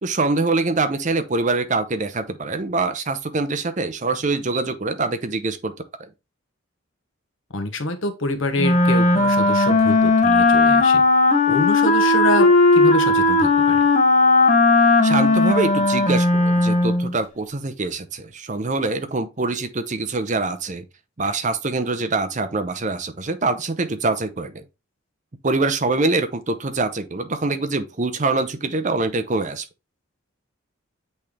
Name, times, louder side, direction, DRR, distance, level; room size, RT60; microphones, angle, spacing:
voice 1, 0.0-5.7 6.0-6.1 15.0-20.8 21.2-24.6 25.4-29.7, right 3 dB, 35° right, 0.7 m, -24 dB
voice 2, 7.5-11.0 11.5-13.8, left 1 dB, 65° left, 1.1 m, -26 dB
Wind instrument woodwind instrument, 8.6-17.1, left 2 dB, 35° left, 1.0 m, -16 dB
8.1 x 3.3 x 3.5 m
head